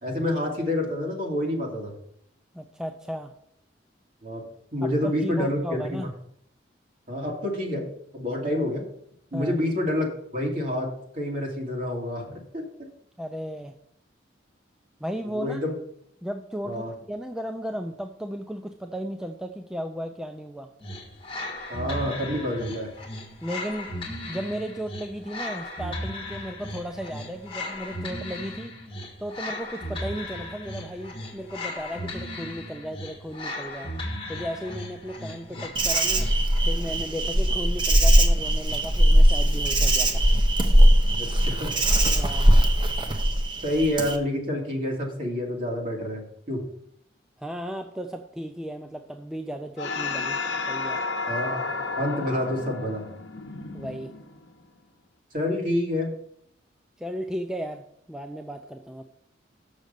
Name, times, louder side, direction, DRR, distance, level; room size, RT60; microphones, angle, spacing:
voice 1, 0.0-1.9 4.2-4.4 4.7-6.0 7.1-7.9 8.1-8.8 9.3-12.6 15.3-15.7 16.6-16.9 21.7-22.9 41.2-41.7 43.6-46.6 51.3-51.7 52.0-53.0 55.3-56.1, left 1 dB, 45° right, -1 dB, 2.6 m, -28 dB
voice 2, 2.5-3.3 4.8-6.1 9.3-9.6 13.2-13.7 15.0-15.6 16.2-16.8 17.1-20.7 23.4-23.9 24.3-28.7 29.2-33.9 34.3-36.3 36.7-40.3 42.1-42.5 47.4-50.4 50.7-51.0 53.7-54.1 57.0-59.0, equal, 5° right, 5 dB, 0.4 m, -35 dB
sound 1, 20.8-36.7, left 1 dB, 30° left, 1.6 m, -36 dB
Insect, 35.8-44.2, equal, 25° right, 0.8 m, -20 dB
sound 2, 49.8-54.6, left 4 dB, 75° left, 0.8 m, -32 dB
6.5 x 6.2 x 6.7 m, 0.70 s
head